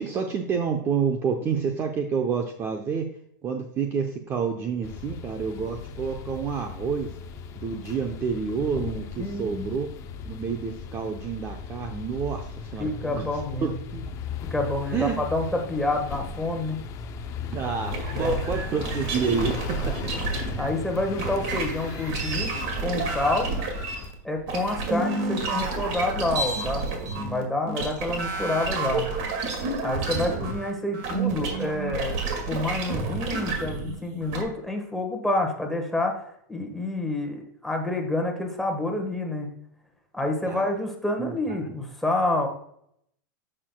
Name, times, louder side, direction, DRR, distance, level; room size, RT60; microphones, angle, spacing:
voice 1, 0.0-3.1 3.4-7.1 7.6-9.9 10.2-13.3 13.6-14.1 14.9-15.2 17.5-19.9 30.1-30.3 40.5-40.7 41.2-41.4 41.6-41.7, right 6 dB, 25° right, 4 dB, 0.7 m, -29 dB
sound 1, 4.8-24.1, left 6 dB, 30° left, 0.6 m, -37 dB
voice 2, 9.2-9.7 12.8-13.7 14.5-16.8 18.1-18.4 19.8-19.9 20.6-23.6 24.2-29.1 29.8-36.2 36.5-39.5 40.1-42.5, left 2 dB, ahead, 2 dB, 1.4 m, -28 dB
sound 2, 17.9-20.7 21.2-34.4, right 3 dB, 50° right, 1.9 m, -30 dB
9.9 x 6.6 x 2.2 m, 0.71 s
supercardioid pair, 145°, 11 cm